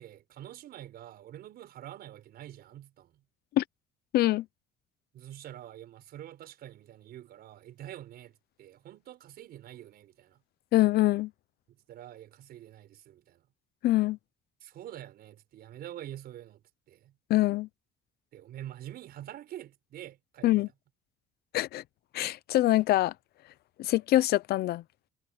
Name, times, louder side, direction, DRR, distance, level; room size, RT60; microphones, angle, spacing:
voice 1, 0.0-3.2 5.1-10.4 11.7-13.5 14.6-16.6 16.9-17.1 18.3-20.5, right 12 dB, 65° right, 5.3 m, -46 dB
voice 2, 4.1-4.4 10.7-11.3 13.8-14.2 17.3-17.7 20.4-20.7 21.5-21.8 22.1-23.1 23.8-24.8, left 16 dB, 70° left, 0.8 m, -24 dB
cardioid pair, 110°, 17 cm